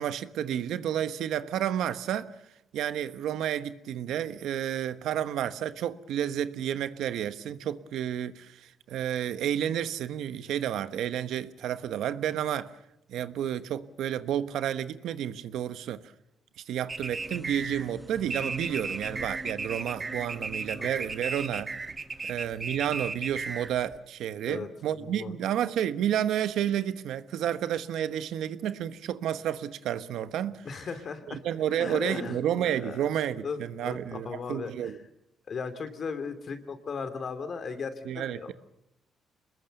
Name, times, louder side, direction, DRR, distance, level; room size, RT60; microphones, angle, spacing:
voice 1, 0.0-2.3 2.7-8.6 8.9-12.7 13.1-16.0 16.7-21.7 22.2-30.6 31.3-35.0 38.0-38.5, right 10 dB, 80° right, 1.1 m, -31 dB
sound 1, 16.9-24.0, right 3 dB, 30° right, 1.6 m, -35 dB
sound 2, 17.2-22.5, right 1 dB, 5° right, 5.8 m, -45 dB
voice 2, 24.5-25.3 30.6-31.4 31.7-32.4 32.8-33.1 33.4-34.9 35.5-38.5, left 5 dB, 50° left, 3.0 m, -37 dB
25.5 x 21.0 x 6.7 m
cardioid pair, 90°, 0 cm